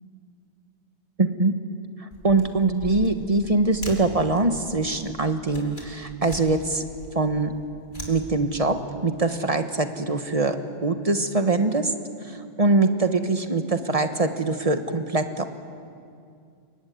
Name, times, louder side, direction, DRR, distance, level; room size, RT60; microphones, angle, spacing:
voice 1, 1.2-1.5 2.0-6.8 7.1-7.5 8.1-11.9 12.6-15.5, right 3 dB, 35° right, 8 dB, 1.4 m, -23 dB
sound 1, 2.1-8.8, left 1 dB, 50° left, 3.8 m, -42 dB
25.5 x 22.5 x 9.5 m, 2.4 s
omnidirectional pair, 1.1 m